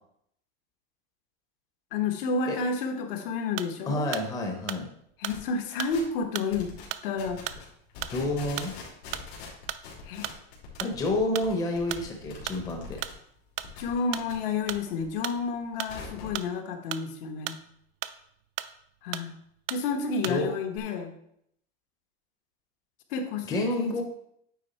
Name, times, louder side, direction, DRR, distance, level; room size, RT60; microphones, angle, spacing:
voice 1, 1.9-4.1 5.2-6.7 7.0-7.5 10.0-10.3 13.8-17.5 19.0-19.3 19.7-21.1 23.1-24.0, left 4 dB, 65° left, 5 dB, 1.2 m, -30 dB
sound 1, 3.6-3.8 4.1-4.3 4.7-5.4 5.8-6.0 6.3-6.5 6.9-7.1 7.5-7.6 8.0-8.3 8.6-8.7 9.1-9.4 9.7-9.9 10.2-10.4 10.8-11.0 11.3-11.5 11.9-12.1 12.5-12.6 13.0-13.2 13.6-13.8 14.1-14.3 14.7-14.9 15.2-15.4 15.8-16.0 16.3-17.1 17.5-17.7 18.0-18.2 18.6-18.8 19.1-19.3 19.7-19.9 20.2-20.4 20.7-20.8, right 14 dB, 65° right, 0.5 m, -36 dB
voice 2, 3.9-4.9 8.1-8.7 10.8-13.0 20.2-20.5 23.5-24.0, left 2 dB, 10° left, 2 dB, 0.7 m, -29 dB
sound 2, 5.3-5.4 5.8-6.2 6.5-6.9 7.2-7.6 7.9-13.1 13.4-14.7 15.0-16.4, left 5 dB, 85° left, 2.6 m, -44 dB
9.2 x 3.5 x 4.2 m, 0.71 s
supercardioid pair, 165°, 30 cm